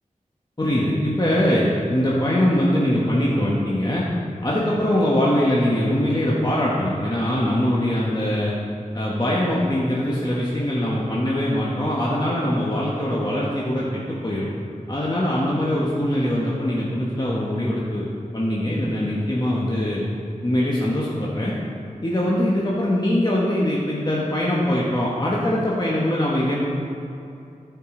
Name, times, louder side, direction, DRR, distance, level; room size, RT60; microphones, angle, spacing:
voice 1, 0.6-4.0 4.4-8.5 8.9-14.5 14.9-18.1 18.3-20.0 20.4-21.5 22.0-26.7, left 1 dB, 30° left, -6 dB, 1.3 m, -22 dB
14.0 x 5.4 x 3.8 m, 2.7 s
wide cardioid pair, 60°, 14 cm